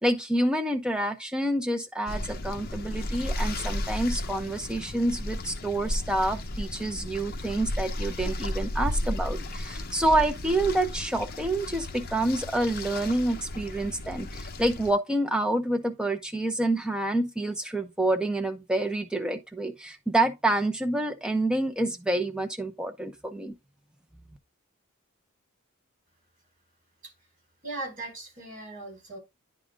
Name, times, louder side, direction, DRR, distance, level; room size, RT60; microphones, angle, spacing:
voice 1, 0.0-23.5, right 1 dB, 5° right, 0.7 m, -28 dB
sound 1, 2.1-14.9, left 1 dB, 45° left, 0.9 m, -34 dB
voice 2, 27.6-29.2, right 2 dB, 40° right, 4.3 m, -38 dB
9.9 x 3.8 x 3.6 m
head